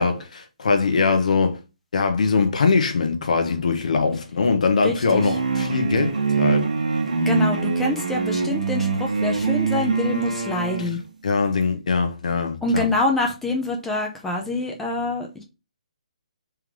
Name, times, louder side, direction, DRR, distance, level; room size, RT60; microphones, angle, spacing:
voice 1, 0.0-1.6 1.9-6.7 10.8-10.9 11.2-12.9, left 4 dB, 70° left, 0.9 m, -22 dB
voice 2, 4.8-5.2 7.2-11.0 12.6-15.4, left 2 dB, 5° left, 0.5 m, -26 dB
sound 1, 5.1-11.0, right 4 dB, 80° right, 1.1 m, -23 dB
3.4 x 3.2 x 3.5 m
hypercardioid pair, 155°, 4 cm